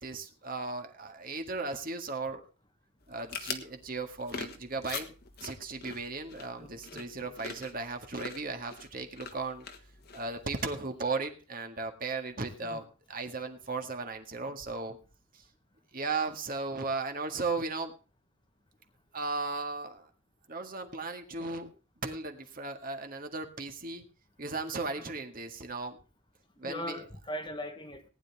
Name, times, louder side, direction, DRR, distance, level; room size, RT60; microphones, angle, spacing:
voice 1, 0.0-2.4 3.1-5.1 5.4-9.7 10.1-15.0 15.9-17.9 19.1-20.1 20.5-21.7 22.0-24.1 24.4-26.0 26.6-27.0, right 3 dB, 40° right, 1.8 m, -36 dB
sound 1, 3.0-10.9, left 5 dB, 45° left, 1.5 m, -44 dB
voice 2, 6.6-7.3 12.6-12.8 25.0-25.1 26.6-28.0, left 1 dB, 20° left, 1.1 m, -40 dB
18.5 x 10.5 x 3.5 m
head